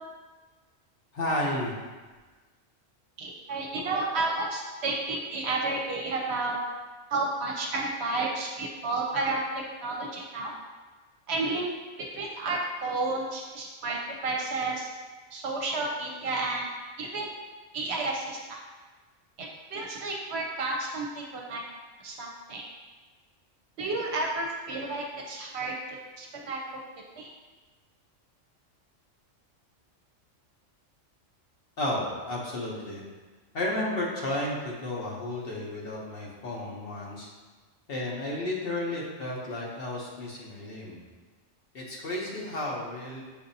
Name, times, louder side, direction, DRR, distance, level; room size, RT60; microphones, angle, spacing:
voice 1, 1.1-1.7 31.8-33.0 33.5-37.3 37.9-41.0 41.7-43.2, left 1 dB, 55° left, -4 dB, 0.9 m, -32 dB
voice 2, 3.2-6.6 7.1-9.4 9.8-10.5 11.3-11.6 12.1-14.9 15.3-16.7 17.0-17.3 17.7-18.4 19.4-21.6 22.0-22.6 23.8-26.6 27.2-27.3, right 3 dB, 65° right, -1 dB, 0.8 m, -31 dB
6.7 x 2.6 x 2.6 m, 1.3 s
omnidirectional pair, 1.3 m